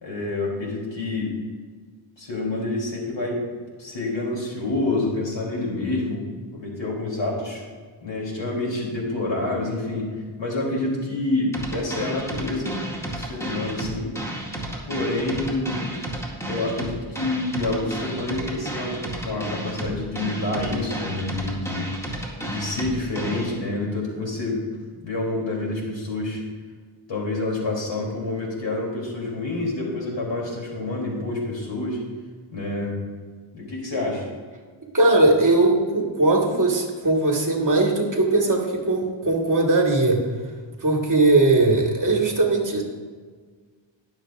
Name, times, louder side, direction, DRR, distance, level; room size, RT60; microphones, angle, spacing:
voice 1, 0.0-1.3 2.2-3.4 3.8-6.2 6.5-7.6 8.0-10.1 10.4-12.8 13.1-14.1 14.9-15.9 16.5-21.9 22.4-24.6 25.0-26.4 27.1-32.0 32.5-33.0 33.5-34.3, left 2 dB, 65° left, -2 dB, 3.1 m, -27 dB
sound 1, 11.5-23.5, right 1 dB, 5° left, 2.1 m, -32 dB
voice 2, 34.9-40.2 40.8-42.8, right 2 dB, 40° right, 0 dB, 1.7 m, -19 dB
20.5 x 7.2 x 2.5 m, 1.5 s
wide cardioid pair, 115°, 47 cm